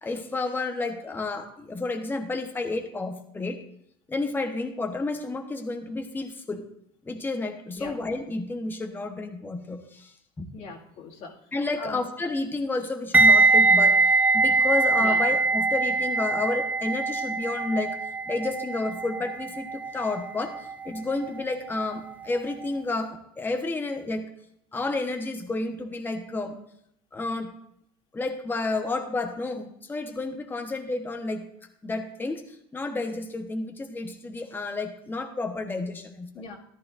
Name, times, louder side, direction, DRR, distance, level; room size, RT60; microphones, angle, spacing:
voice 1, 0.0-3.6 4.1-6.6 7.0-10.5 11.5-14.0 14.3-18.0 18.3-24.2 24.7-26.6 27.1-27.5 28.1-31.4 31.8-36.4, left 3 dB, 15° left, 4 dB, 1.1 m, -31 dB
voice 2, 10.5-11.3 11.8-12.0 15.0-15.3 36.3-36.6, left 3 dB, 60° left, -2 dB, 2.1 m, -38 dB
sound 1, 13.1-22.1 22.4-22.7, right 3 dB, 10° right, 0.4 m, -23 dB
13.5 x 11.5 x 2.5 m, 0.73 s
supercardioid pair, 105°, 13 cm